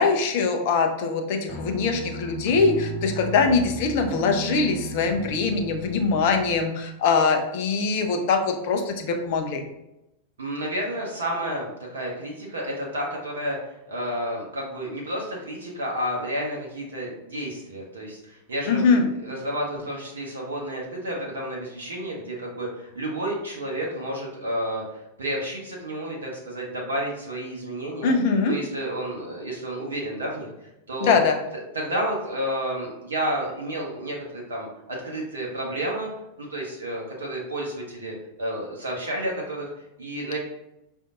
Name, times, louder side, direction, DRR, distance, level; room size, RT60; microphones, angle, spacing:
voice 1, 0.0-9.6 18.7-19.1 28.0-28.6 31.0-31.3, left 4 dB, 50° left, 4 dB, 0.5 m, -22 dB
sound 1, 1.5-6.6, right 2 dB, 5° left, 1.3 m, -36 dB
voice 2, 10.4-13.6 13.9-28.1 28.4-30.5 30.9-31.2 31.7-36.1 36.4-39.7 40.0-40.4, right 1 dB, 70° right, -2 dB, 0.7 m, -31 dB
5.0 x 2.6 x 2.4 m, 0.90 s
figure-of-eight pair, 90°, 0 cm